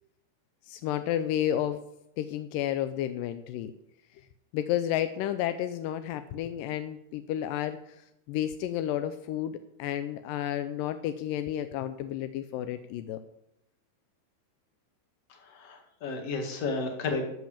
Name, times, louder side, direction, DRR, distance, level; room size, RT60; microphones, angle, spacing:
voice 1, 0.7-1.8 2.2-3.7 4.5-8.0 8.3-13.2, left 11 dB, 85° left, 10 dB, 2.0 m, -31 dB
voice 2, 15.4-17.2, left 3 dB, 50° left, 3 dB, 2.4 m, -32 dB
12.5 x 6.0 x 7.3 m, 0.81 s
omnidirectional pair, 4.4 m